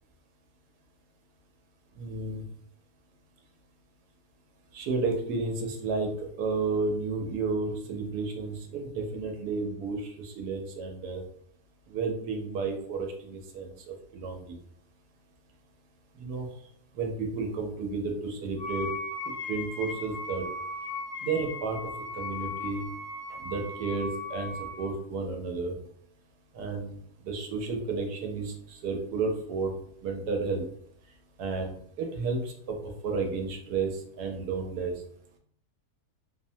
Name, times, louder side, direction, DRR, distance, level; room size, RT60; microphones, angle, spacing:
voice 1, 2.0-2.4 4.7-11.2 11.9-14.6 16.2-16.5 16.9-18.9 19.5-20.5 21.2-21.8 22.1-22.9 23.3-25.8 26.5-27.0 27.2-29.7 30.0-30.7 31.4-34.9, right 4 dB, 85° right, 2 dB, 1.2 m, -32 dB
Wind instrument woodwind instrument, 18.6-24.9, left 2 dB, 60° left, 0.9 m, -37 dB
3.0 x 2.0 x 2.6 m, 0.66 s
omnidirectional pair, 1.7 m